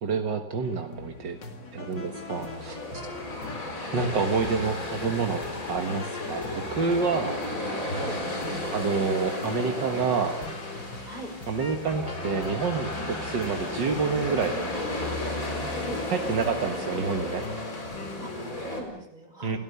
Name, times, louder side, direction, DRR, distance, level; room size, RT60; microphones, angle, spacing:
voice 1, 0.0-1.4 1.7-2.8 3.9-5.4 5.7-7.4 8.7-10.4 11.5-14.6 16.1-17.5 19.4-19.6, right 5 dB, 75° right, 5 dB, 2.2 m, -28 dB
sound 1, 0.6-18.3, left 4 dB, 70° left, 2.9 m, -42 dB
voice 2, 1.3-1.9 5.4-5.6 7.9-8.2 11.0-11.3 15.7-16.0 18.2-19.6, right 1 dB, 25° right, 2 dB, 5.8 m, -43 dB
sound 2, 1.5-18.8, left 1 dB, 45° left, 4.8 m, -34 dB
29.0 x 17.5 x 6.8 m, 0.81 s
omnidirectional pair, 2.0 m